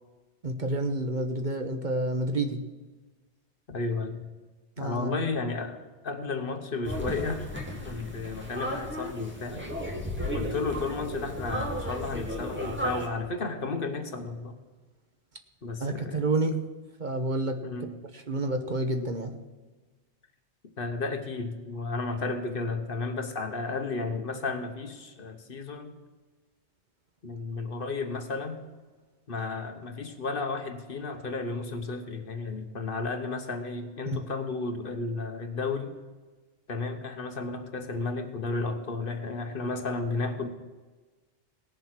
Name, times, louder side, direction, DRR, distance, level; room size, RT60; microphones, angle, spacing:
voice 1, 0.4-2.6 4.8-5.2 15.8-16.6 17.0-17.6 18.1-19.4 34.1-34.2, right 2 dB, 45° right, 6 dB, 1.1 m, -29 dB
voice 2, 3.7-4.3 4.8-5.8 6.0-7.5 7.8-9.7 10.3-14.6 15.6-16.3 17.6-17.9 20.8-26.0 27.2-28.6 29.3-35.9 36.7-40.5, left 3 dB, 55° left, 7 dB, 1.2 m, -33 dB
sound 1, 6.8-13.1, equal, 10° right, 2.1 m, -34 dB
18.0 x 7.2 x 6.0 m, 1.3 s
omnidirectional pair, 1.2 m